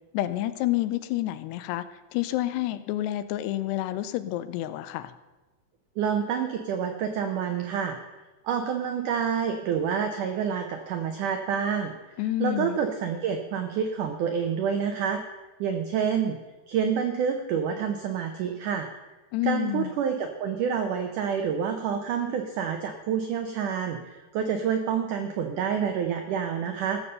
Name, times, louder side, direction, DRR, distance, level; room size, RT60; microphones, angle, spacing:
voice 1, 0.1-1.9 2.1-5.1 12.2-12.8 19.3-19.9, left 15 dB, 90° left, 13 dB, 2.7 m, -29 dB
voice 2, 6.0-8.0 8.4-12.0 12.4-15.2 15.6-16.4 16.7-18.9 19.4-27.0, right 7 dB, 85° right, 6 dB, 1.8 m, -28 dB
15.5 x 7.1 x 6.7 m, 1.1 s
omnidirectional pair, 4.8 m